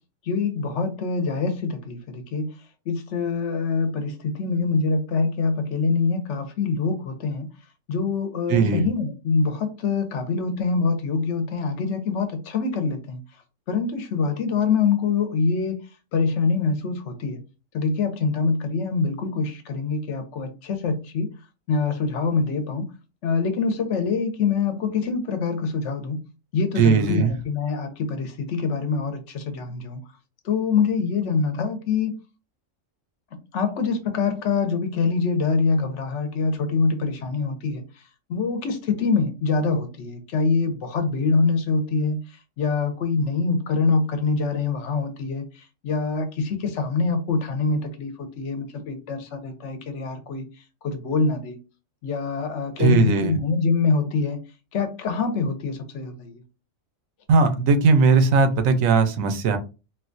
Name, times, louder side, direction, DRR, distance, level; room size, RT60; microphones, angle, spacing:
voice 1, 0.2-2.5 2.9-7.5 7.9-13.2 13.7-15.8 16.1-17.4 17.7-21.3 21.7-22.9 23.2-26.2 26.5-30.0 30.4-32.1 33.5-38.0 38.3-50.4 50.8-51.6 52.0-54.4 54.7-56.4, left 4 dB, 65° left, 1.0 m, -25 dB
voice 2, 8.5-8.9 26.8-27.3 52.8-53.3 57.3-59.6, right 4 dB, 85° right, 1.0 m, -18 dB
4.0 x 2.2 x 2.5 m
omnidirectional pair, 1.4 m